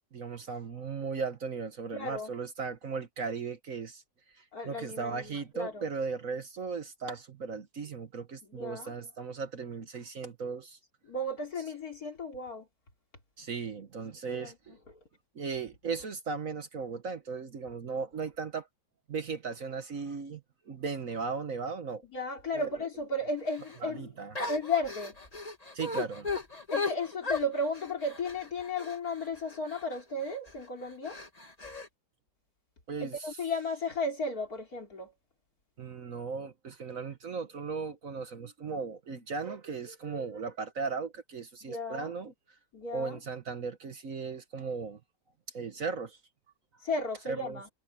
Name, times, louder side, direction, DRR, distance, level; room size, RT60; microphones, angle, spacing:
voice 1, 0.1-4.0 4.3-10.8 13.4-14.8 15.3-18.7 19.1-20.4 20.7-22.0 22.5-22.7 23.8-24.3 25.7-26.3 32.9-33.4 35.8-42.3 42.9-45.0 45.5-46.2 47.3-47.6, right 5 dB, 50° right, 1.5 m, -37 dB
voice 2, 1.9-2.3 4.5-5.9 8.5-8.9 11.0-12.7 14.3-14.8 22.0-24.1 24.5-25.2 26.7-31.2 33.0-35.1 41.6-42.1 42.7-43.2 46.8-47.7, left 2 dB, 55° left, 4.0 m, -34 dB
sound 1, 23.5-23.8 24.4-30.0 30.5-30.6 31.0-31.9, left 4 dB, 20° left, 2.0 m, -36 dB
omnidirectional pair, 1.9 m